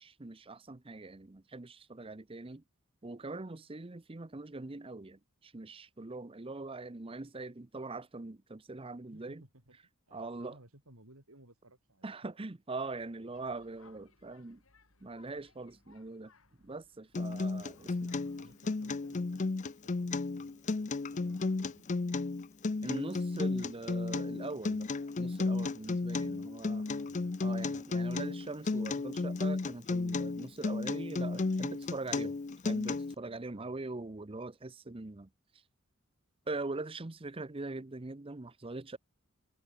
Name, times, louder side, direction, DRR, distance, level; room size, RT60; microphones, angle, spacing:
voice 1, 0.0-2.6 3.0-9.4 10.1-10.6 12.0-14.6 15.0-16.3 16.6-18.1 22.8-24.9 25.2-26.8 27.4-32.4 32.6-35.3 36.5-39.0, right 3 dB, 25° right, 0.7 m, -42 dB
voice 2, 9.1-9.8 10.1-12.1 17.8-21.9 26.3-27.9 33.5-33.8, right 1 dB, 85° right, 5.3 m, -60 dB
sound 1, 13.3-18.6, left 4 dB, 70° left, 3.8 m, -66 dB
Acoustic guitar, 17.1-33.1, left 3 dB, 35° left, 0.5 m, -33 dB
Acoustic guitar 2, 17.2-33.2, left 1 dB, 15° left, 3.4 m, -67 dB
head